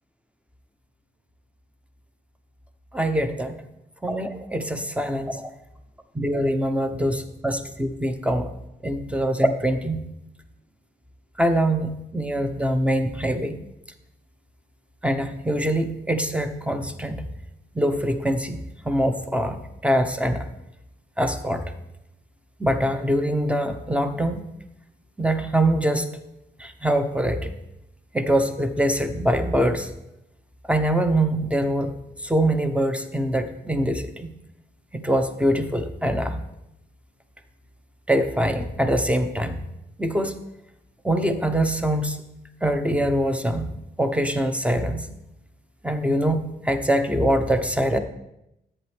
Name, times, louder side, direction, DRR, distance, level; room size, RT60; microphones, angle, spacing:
voice 1, 2.9-3.6 4.0-5.3 6.1-8.5 8.8-10.0 11.4-13.6 15.0-17.2 17.7-18.6 18.8-20.4 21.2-21.6 22.6-24.4 25.2-26.1 26.6-27.5 28.1-29.9 30.7-31.9 32.2-34.3 34.9-36.4 38.1-39.6 40.0-40.4 41.0-42.2 42.6-43.7 44.0-45.1 45.8-48.0, right 1 dB, 5° right, 8 dB, 1.1 m, -23 dB
10.5 x 8.2 x 3.5 m, 0.86 s
supercardioid pair, 50°, 18 cm